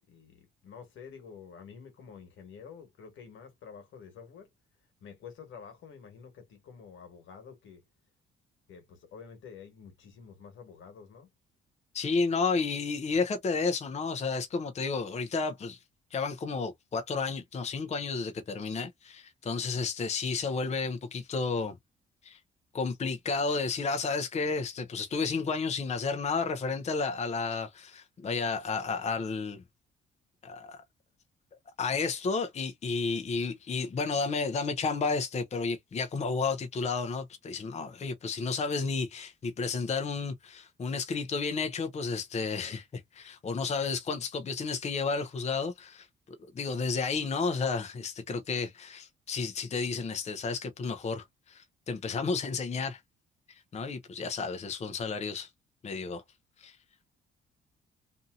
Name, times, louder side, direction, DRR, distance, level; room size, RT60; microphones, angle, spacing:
voice 1, 0.1-4.5 5.0-7.8 8.7-11.3, left 6 dB, 75° left, 1.4 m, -49 dB
voice 2, 11.9-15.8 16.1-21.7 22.2-22.4 22.7-29.6 30.4-30.8 31.8-46.1 46.5-53.0 53.5-55.5 55.8-56.2 56.6-56.8, left 4 dB, 35° left, 0.6 m, -32 dB
2.7 x 2.6 x 2.4 m
cardioid pair, 90°, 20 cm